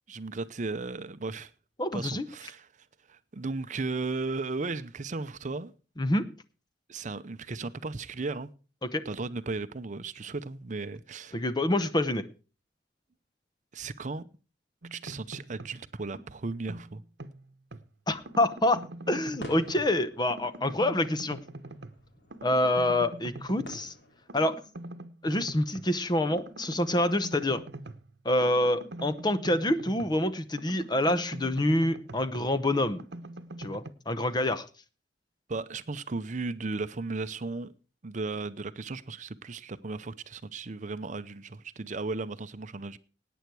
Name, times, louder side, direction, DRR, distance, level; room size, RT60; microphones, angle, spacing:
voice 1, 0.1-1.5 1.9-2.7 3.1-5.7 6.9-8.5 9.0-11.4 13.7-14.2 14.9-17.0 35.5-37.7 38.0-43.0, right 3 dB, 45° right, 0.6 m, -35 dB
voice 2, 1.8-2.3 6.0-6.3 8.8-9.0 11.3-12.2 18.1-21.4 22.4-23.9 24.3-24.6 25.2-27.6 28.2-33.0 33.6-34.7, left 1 dB, 25° left, 0.8 m, -27 dB
sound 1, 14.8-15.8 16.1-17.9 18.2-20.0 20.3-22.0 22.3-23.9 24.3-25.9 26.3-30.3 30.6-33.9, right 2 dB, 70° right, 1.0 m, -43 dB
sound 2, 18.1-24.6, left 1 dB, 70° left, 3.2 m, -50 dB
17.5 x 9.3 x 4.6 m
head